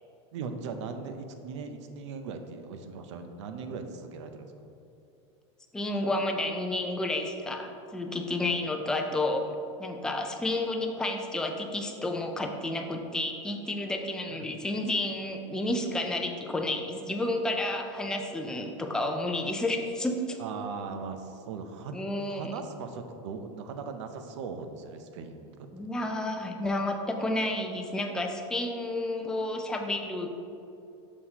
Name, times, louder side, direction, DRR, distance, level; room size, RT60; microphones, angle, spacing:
voice 1, 0.3-4.5 14.3-14.5 20.4-22.0 22.3-25.7, right 5 dB, 90° right, 7 dB, 0.6 m, -39 dB
voice 2, 5.7-20.4 21.9-22.5 25.7-30.3, left 2 dB, 5° left, 3 dB, 0.4 m, -31 dB
6.3 x 5.6 x 2.9 m, 2.7 s
supercardioid pair, 160°, 15 cm